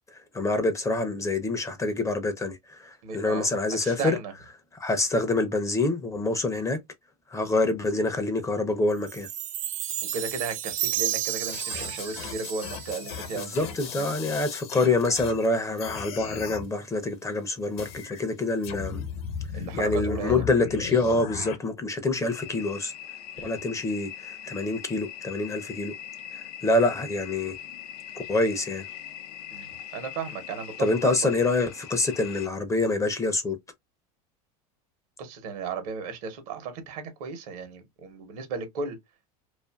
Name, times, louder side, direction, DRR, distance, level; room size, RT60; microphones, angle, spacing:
voice 1, 0.1-4.2 4.7-6.8 7.3-9.3 13.4-19.0 19.5-22.9 23.4-25.9 26.3-27.6 28.3-28.9 30.8-33.6, left 2 dB, 15° left, 0.5 m, -26 dB
voice 2, 3.0-3.5 3.8-4.3 10.1-14.1 19.5-20.4 23.4-23.5 29.5-29.7 29.9-30.7 31.0-31.3 35.2-39.0, right 5 dB, 70° right, 0.9 m, -35 dB
Chime, 9.1-13.5, right 12 dB, 40° right, 0.4 m, -32 dB
sound 1, 11.5-15.5 15.8-16.7 17.8-18.2 18.6-21.6, left 7 dB, 65° left, 0.8 m, -37 dB
sound 2, 22.3-32.5, left 10 dB, 85° left, 0.5 m, -41 dB
2.5 x 2.4 x 2.2 m
hypercardioid pair, 105°, 20 cm